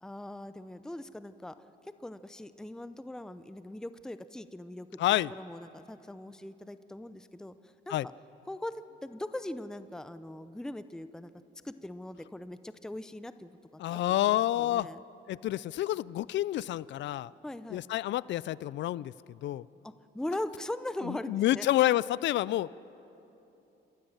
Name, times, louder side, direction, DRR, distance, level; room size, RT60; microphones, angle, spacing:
voice 1, 0.0-1.5 2.0-4.9 5.3-7.5 7.9-8.1 8.5-11.3 11.6-15.0 17.4-17.8 19.8-21.7, left 1 dB, 5° left, 12 dB, 0.6 m, -40 dB
voice 2, 5.0-5.3 7.9-8.1 13.8-14.9 15.3-17.3 17.7-19.1 19.4-19.6 21.0-22.8, left 14 dB, 65° left, 20 dB, 0.4 m, -28 dB
29.0 x 13.0 x 7.3 m, 3.0 s
cardioid pair, 90°, 20 cm